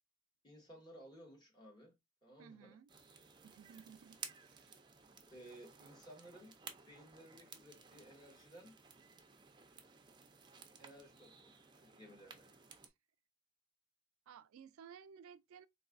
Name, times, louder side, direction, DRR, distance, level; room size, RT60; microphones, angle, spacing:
voice 1, 0.4-1.9 2.2-2.8 5.3-6.6 6.9-8.8 10.8-12.5, equal, 20° left, 1.1 m, -57 dB
voice 2, 2.4-2.9 3.4-4.8 12.8-12.9 14.3-15.7, right 7 dB, 90° right, 0.3 m, -57 dB
sound 1, 2.9-12.9, right 6 dB, 20° right, 0.4 m, -56 dB
3.8 x 2.6 x 2.5 m
head